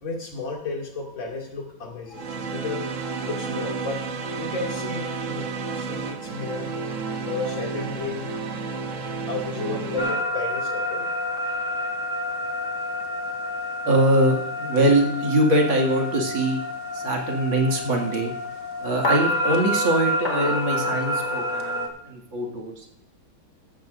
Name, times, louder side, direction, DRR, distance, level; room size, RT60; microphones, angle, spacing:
voice 1, 0.0-6.7 7.2-8.3 9.3-11.1, left 3 dB, 70° left, -1 dB, 3.3 m, -33 dB
sound 1, 2.1-10.2, right 4 dB, 50° right, 1.1 m, -31 dB
sound 2, 10.0-21.9, left 1 dB, 35° left, 1.7 m, -28 dB
voice 2, 13.9-16.6 16.9-18.3 18.8-22.8, right 1 dB, 70° right, 0 dB, 3.0 m, -22 dB
15.0 x 14.0 x 2.6 m, 0.78 s
omnidirectional pair, 2.2 m